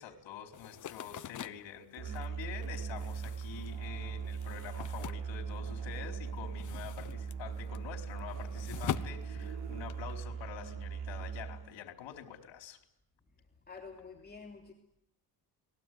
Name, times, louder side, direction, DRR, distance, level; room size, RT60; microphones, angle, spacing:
voice 1, 0.0-12.8, left 9 dB, 80° left, 6 dB, 4.4 m, -46 dB
sound 1, 0.5-6.0 6.3-10.2, left 10 dB, 45° left, 1.1 m, -44 dB
Musical instrument, 2.0-11.8, right 6 dB, 75° right, 6.2 m, -40 dB
voice 2, 13.7-14.7, left 4 dB, 20° left, 1 dB, 2.9 m, -48 dB
29.0 x 21.0 x 9.5 m, 0.78 s
cardioid pair, 150°, 43 cm